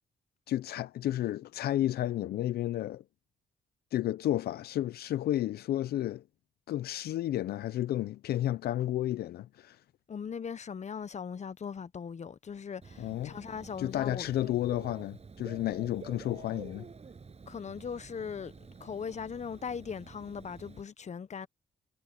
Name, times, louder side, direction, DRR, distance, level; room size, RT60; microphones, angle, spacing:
voice 1, 0.5-3.0 3.9-6.2 6.7-9.8 13.0-13.4 13.8-16.8, left 13 dB, 75° left, 0.7 m, -32 dB
voice 2, 10.1-14.5 17.5-18.5 18.8-21.5, left 6 dB, 45° left, 1.2 m, -39 dB
Dog / Bird, 12.8-20.8, right 5 dB, 40° right, 7.3 m, -49 dB
supercardioid pair, 60°, 16 cm